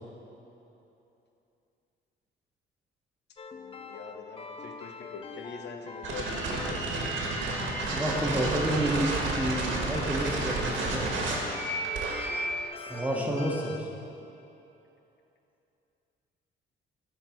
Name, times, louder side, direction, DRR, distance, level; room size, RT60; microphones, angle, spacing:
sound 1, 3.4-13.8, left 4 dB, 30° left, 0.5 m, -43 dB
voice 1, 3.5-6.9, left 5 dB, 60° left, 4 dB, 0.8 m, -43 dB
sound 2, 6.0-12.7, right 2 dB, 75° right, 1.4 m, -31 dB
voice 2, 7.9-11.1 12.9-13.9, right 1 dB, 5° right, -2 dB, 1.4 m, -30 dB
11.5 x 4.7 x 4.5 m, 2.9 s
cardioid pair, 90°, 20 cm